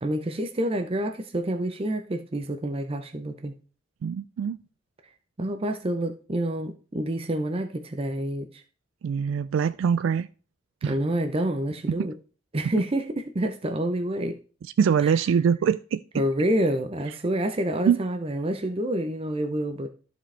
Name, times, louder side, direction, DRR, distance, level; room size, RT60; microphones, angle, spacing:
voice 1, 0.0-3.5 5.4-8.6 10.8-12.1 12.5-14.4 15.0-15.2 16.1-19.9, right 1 dB, 30° right, 0.6 m, -28 dB
voice 2, 4.0-4.6 9.0-10.3 10.8-10.9 14.8-16.2 17.9-18.0, right 7 dB, 90° right, 0.3 m, -23 dB
13.5 x 5.0 x 3.3 m
head